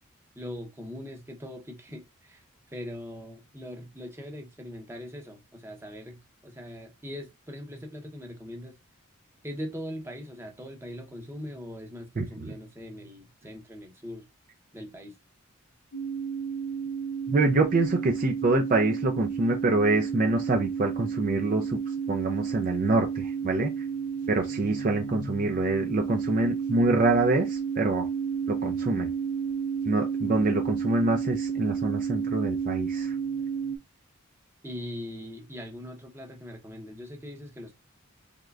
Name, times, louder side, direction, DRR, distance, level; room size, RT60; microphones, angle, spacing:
voice 1, 0.3-8.8 9.4-14.3 14.7-15.2 34.6-37.7, left 1 dB, 10° right, 0.7 m, -41 dB
voice 2, 12.2-12.5 17.3-23.7 24.3-28.1 28.5-29.1 29.8-33.2, right 2 dB, 40° right, 0.4 m, -26 dB
sound 1, 15.9-33.8, right 6 dB, 75° left, 0.5 m, -31 dB
3.6 x 3.1 x 2.3 m
head